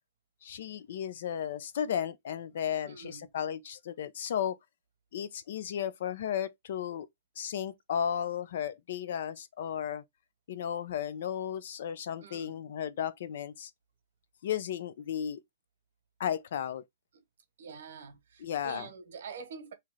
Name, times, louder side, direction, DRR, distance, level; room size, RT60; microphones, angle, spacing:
voice 1, 0.4-4.6 5.1-7.1 7.4-10.0 10.5-13.7 14.4-15.4 16.2-16.8 18.4-18.9, left 9 dB, 55° left, 0.4 m, -34 dB
voice 2, 2.8-3.3 12.2-12.6 17.1-17.2 17.6-19.7, right 5 dB, 65° right, 1.0 m, -46 dB
3.1 x 2.8 x 3.6 m
hypercardioid pair, 180°, 0 cm